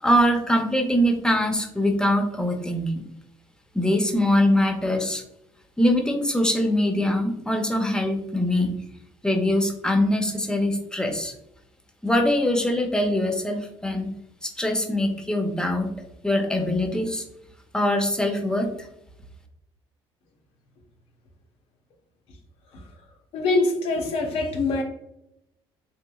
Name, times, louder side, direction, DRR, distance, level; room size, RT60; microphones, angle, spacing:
voice 1, 0.0-2.9 3.7-5.2 5.8-8.7 9.2-11.3 12.0-14.1 14.4-15.9 16.2-17.2 17.7-18.9, left 1 dB, 5° left, 3 dB, 0.6 m, -23 dB
voice 2, 23.3-24.8, left 3 dB, 70° left, 3 dB, 0.7 m, -24 dB
3.2 x 3.0 x 2.3 m, 0.82 s
cardioid pair, 100°, 10 cm